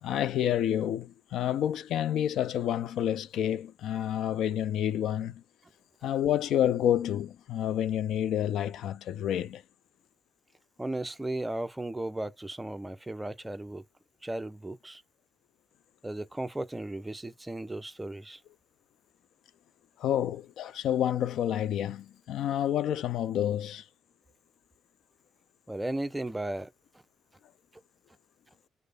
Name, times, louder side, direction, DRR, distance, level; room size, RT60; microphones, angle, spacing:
voice 1, 0.0-5.4 6.0-9.6 20.0-23.8, left 10 dB, 80° left, 0.3 m, -29 dB
voice 2, 10.8-13.8 14.2-15.0 16.0-18.4 25.7-26.7, right 1 dB, 10° right, 0.4 m, -35 dB
3.2 x 2.0 x 3.3 m
cardioid pair, 90°, 0 cm